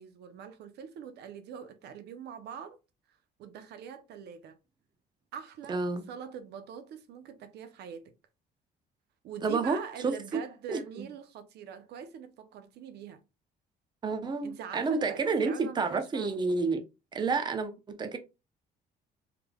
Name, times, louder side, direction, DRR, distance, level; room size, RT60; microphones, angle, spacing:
voice 1, 0.0-2.8 3.1-4.6 5.3-8.1 9.2-13.2 14.4-16.4, right 7 dB, 75° right, 0.7 m, -44 dB
voice 2, 5.7-6.0 9.4-9.8 10.0-10.4 10.7-10.8 14.0-16.8 17.1-18.2, right 4 dB, 25° right, 0.6 m, -29 dB
3.4 x 3.3 x 2.2 m
cardioid pair, 105°, 17 cm